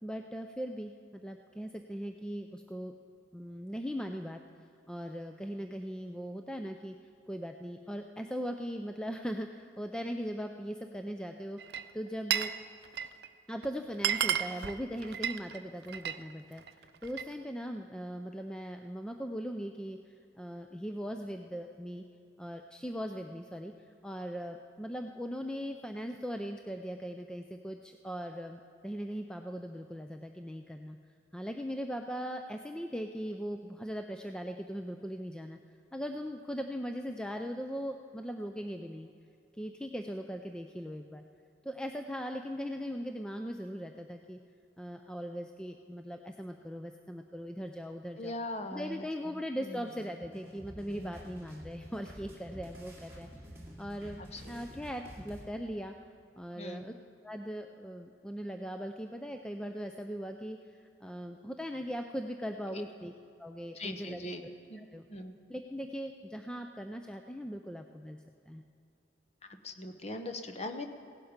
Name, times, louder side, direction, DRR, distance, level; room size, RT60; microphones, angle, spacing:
voice 1, 0.0-2.9 3.3-4.4 4.9-7.0 7.3-12.7 13.5-22.0 22.4-31.0 31.3-39.1 39.5-41.2 41.6-44.4 44.8-48.3 48.7-53.3 53.8-54.2 54.5-56.0 56.4-56.9 57.2-63.1 63.4-64.2 64.8-65.1 65.5-68.2 68.5-68.7, equal, 5° left, 5 dB, 0.4 m, -39 dB
Glass, 11.6-12.6 12.8-13.3 13.6-13.7 13.9-16.2 16.6-17.3, right 9 dB, 55° right, 0.5 m, -33 dB
voice 2, 48.2-49.8 50.9-51.2 54.2-54.6 56.6-56.8 62.7-62.8 63.7-64.4 64.7-64.8 65.1-65.3 69.6-70.9, left 1 dB, 35° left, 7 dB, 0.9 m, -41 dB
sound 1, 49.9-55.4, equal, 10° right, 2.4 m, -49 dB
17.0 x 11.5 x 5.1 m, 2.6 s
head